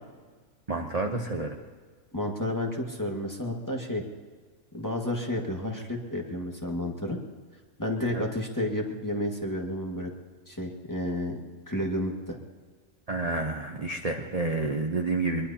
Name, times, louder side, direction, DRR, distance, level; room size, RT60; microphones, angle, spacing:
voice 1, 0.7-1.6 8.1-8.2 13.1-15.5, right 3 dB, 30° right, 2 dB, 0.9 m, -29 dB
voice 2, 2.1-4.0 4.7-7.2 7.8-10.1 10.5-11.4 11.7-12.4, left 1 dB, 15° left, 1 dB, 1.7 m, -31 dB
23.0 x 22.0 x 2.9 m, 1.5 s
omnidirectional pair, 1.5 m